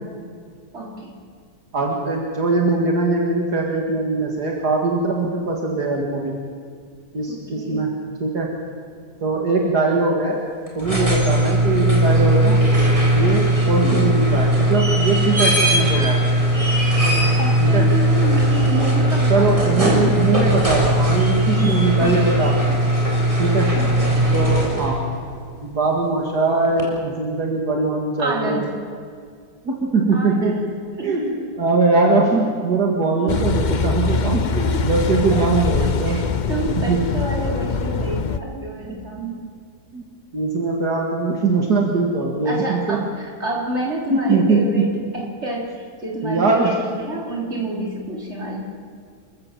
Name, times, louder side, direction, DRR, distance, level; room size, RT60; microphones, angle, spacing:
voice 1, 0.7-1.2 7.3-7.9 13.8-14.1 17.4-20.3 22.0-22.4 23.7-24.1 28.2-28.7 30.1-30.6 31.0-31.4 33.2-33.4 34.7-34.9 35.3-35.4 35.8-39.4 42.4-48.6, right 1 dB, 40° right, -1 dB, 4.0 m, -29 dB
voice 2, 1.7-6.4 7.1-7.9 8.2-8.5 9.2-10.4 10.7-12.6 13.1-16.2 17.6-17.8 19.3-22.8 23.4-23.7 24.3-25.0 25.6-28.7 29.6-30.5 31.0-31.3 31.6-36.2 36.8-37.0 39.9-40.0 40.3-43.0 44.1-44.9 46.2-46.7, right 3 dB, 70° right, 0 dB, 2.6 m, -21 dB
sound 1, 10.7-25.1 26.8-26.9, right 1 dB, 20° right, 4.1 m, -18 dB
Car passing by / Idling / Accelerating revving vroom, 33.3-38.4, left 4 dB, 55° left, 0.5 m, -23 dB
27.5 x 15.0 x 7.5 m, 2.1 s
omnidirectional pair, 1.8 m